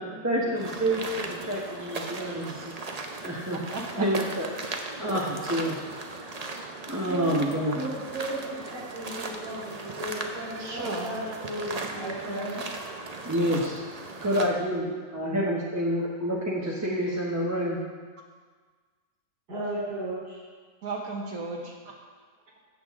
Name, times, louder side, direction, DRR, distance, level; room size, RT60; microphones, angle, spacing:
voice 1, 0.2-2.7 3.2-3.6 4.0-4.5 5.0-5.8 6.9-7.8 13.2-13.8 14.2-17.8, equal, 10° right, -5 dB, 0.9 m, -28 dB
sound 1, 0.5-14.5, right 3 dB, 35° right, 0.6 m, -37 dB
voice 2, 0.8-1.3 7.0-12.6 19.5-20.4, right 1 dB, 90° right, -10 dB, 4.4 m, -35 dB
voice 3, 3.5-4.1 4.7-5.3 5.6-5.7 10.6-11.3 20.8-22.0, right 3 dB, 65° right, -1 dB, 1.6 m, -36 dB
15.0 x 8.0 x 3.7 m, 1.5 s
omnidirectional pair, 1.7 m